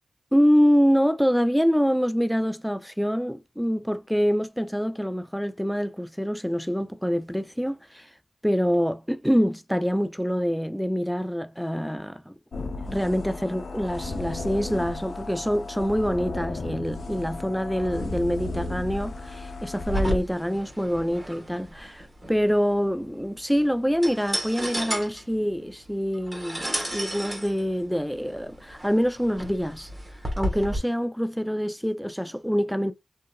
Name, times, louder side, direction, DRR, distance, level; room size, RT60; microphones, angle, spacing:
voice 1, 0.3-8.1 8.4-12.3 12.9-29.9 30.4-32.9, equal, ahead, 0.4 m, -25 dB
sound 1, 12.5-20.2, left 2 dB, 75° left, 0.4 m, -34 dB
sound 2, 19.8-30.8, equal, 20° right, 1.2 m, -33 dB
2.7 x 2.5 x 2.2 m
cardioid pair, 50°, 0 cm